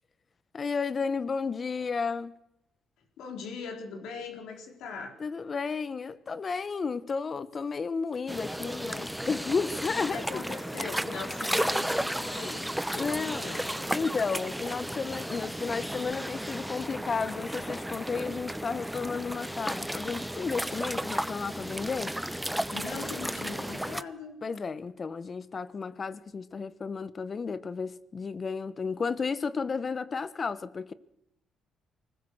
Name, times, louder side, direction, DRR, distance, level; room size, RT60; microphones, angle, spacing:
voice 1, 0.5-2.3 5.2-10.4 12.9-13.4 13.9-22.2 24.4-30.9, left 5 dB, 40° left, 1.2 m, -32 dB
voice 2, 3.2-5.1 10.1-12.6 12.9-13.9 22.7-24.4, left 5 dB, 85° left, 4.4 m, -40 dB
sound 1, 8.3-24.0, equal, 5° right, 0.9 m, -34 dB
24.5 x 20.0 x 6.5 m
cardioid pair, 90°, 0 cm